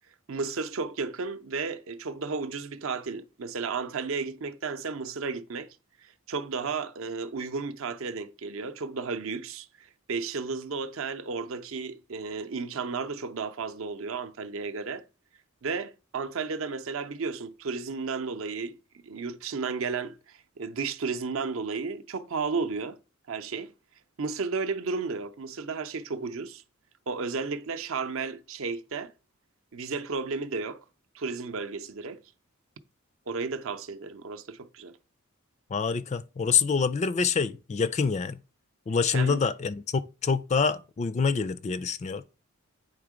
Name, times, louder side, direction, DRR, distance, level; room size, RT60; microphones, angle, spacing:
voice 1, 0.3-5.7 6.0-15.0 15.6-18.7 19.0-23.0 23.3-23.7 24.2-26.6 27.1-29.1 29.7-30.8 31.1-32.2 33.3-34.9 39.1-39.4, right 4 dB, 65° right, 0.6 m, -33 dB
voice 2, 35.7-38.4 38.9-42.2, left 5 dB, 30° left, 0.3 m, -26 dB
8.8 x 3.6 x 4.9 m
head